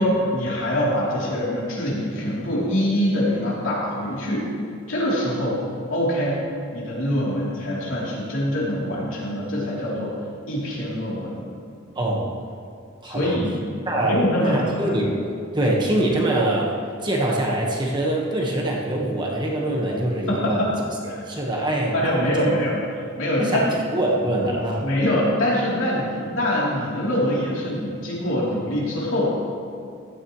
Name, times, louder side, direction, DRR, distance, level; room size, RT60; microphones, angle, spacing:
voice 1, 0.0-4.5 4.9-5.6 5.9-6.4 6.7-10.2 10.5-11.4 13.0-13.6 13.9-15.0 15.6-15.7 20.3-20.7 21.1-21.2 21.9-22.8 23.2-23.7 24.8-29.3, equal, 70° left, -6 dB, 3.4 m, -24 dB
voice 2, 11.9-12.4 13.0-13.4 13.9-15.1 15.5-16.7 17.0-20.7 21.3-22.5 23.4-23.6 23.9-24.9, right 1 dB, 20° right, -2 dB, 1.4 m, -24 dB
15.5 x 12.0 x 3.2 m, 2.5 s
head